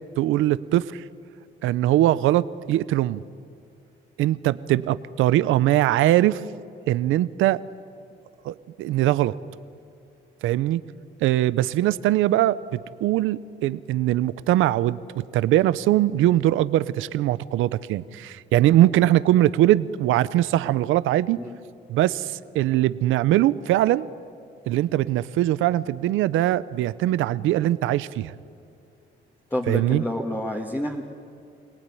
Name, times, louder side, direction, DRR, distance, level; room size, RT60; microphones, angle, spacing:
voice 1, 0.2-1.0 1.6-3.2 4.2-6.4 6.9-7.6 8.4-9.3 10.4-10.8 11.2-21.4 21.9-24.1 24.7-28.3 29.7-30.0, right 14 dB, 90° right, 16 dB, 0.7 m, -21 dB
voice 2, 29.5-31.0, left 1 dB, 10° left, -1 dB, 2.2 m, -28 dB
27.0 x 18.5 x 9.9 m, 2.4 s
cardioid pair, 90°, 20 cm